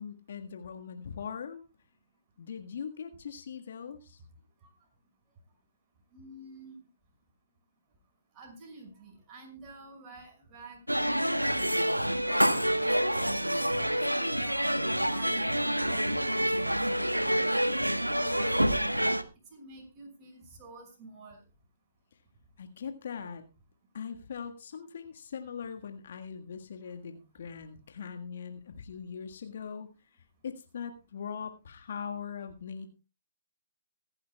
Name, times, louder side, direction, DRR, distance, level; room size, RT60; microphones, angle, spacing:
voice 1, 0.0-1.6 2.4-4.2 22.6-23.4 23.9-29.9 30.4-32.9, left 7 dB, 50° left, 6 dB, 1.6 m, -41 dB
voice 2, 6.1-6.8 8.3-13.6 13.9-17.7 18.2-19.0 19.5-21.4, right 2 dB, 25° right, 1 dB, 6.0 m, -50 dB
sound 1, 10.9-19.2, equal, 90° right, 1.2 m, -27 dB
24.5 x 10.5 x 2.3 m, 0.29 s
figure-of-eight pair, 130°, 0 cm